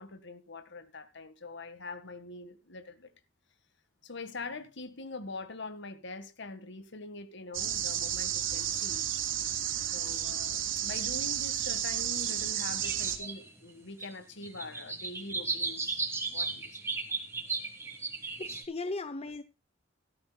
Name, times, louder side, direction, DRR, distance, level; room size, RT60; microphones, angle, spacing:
voice 1, 0.0-3.1 4.0-9.0 9.9-16.8, left 3 dB, 65° left, 1.8 m, -43 dB
sound 1, 7.5-13.2, right 10 dB, 85° right, 2.8 m, -32 dB
sound 2, 11.6-11.7 12.2-13.7 14.0-14.1 14.4-18.6, right 4 dB, 15° right, 3.0 m, -35 dB
voice 2, 18.4-19.4, left 3 dB, 30° left, 0.8 m, -37 dB
16.5 x 13.0 x 2.3 m
head